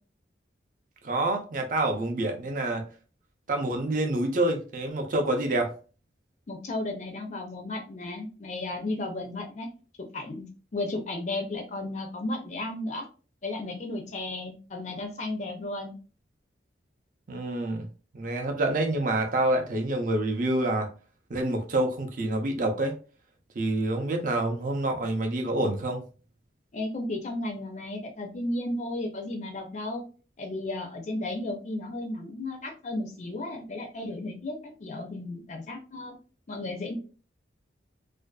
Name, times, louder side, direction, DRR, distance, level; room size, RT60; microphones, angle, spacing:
voice 1, 1.0-2.8 3.5-5.7 17.3-17.9 18.1-20.9 21.3-22.9 23.6-26.0, right 2 dB, 45° right, 0.5 m, -27 dB
voice 2, 6.5-9.7 10.1-13.0 13.4-15.9 26.7-30.0 30.4-36.2 36.5-37.0, left 2 dB, 40° left, 0.4 m, -34 dB
2.5 x 2.2 x 2.2 m
head